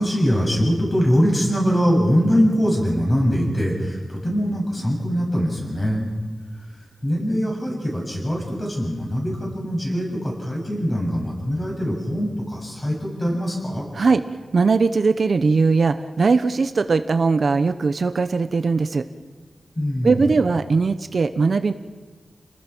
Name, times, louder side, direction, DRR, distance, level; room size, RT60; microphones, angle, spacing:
voice 1, 0.0-6.1 7.0-13.9 19.8-20.3, equal, 25° left, -1 dB, 7.5 m, -22 dB
voice 2, 14.5-19.1 20.0-21.7, right 4 dB, 55° right, 10 dB, 0.8 m, -19 dB
30.0 x 20.0 x 6.2 m, 1.4 s
wide cardioid pair, 125°, 0 cm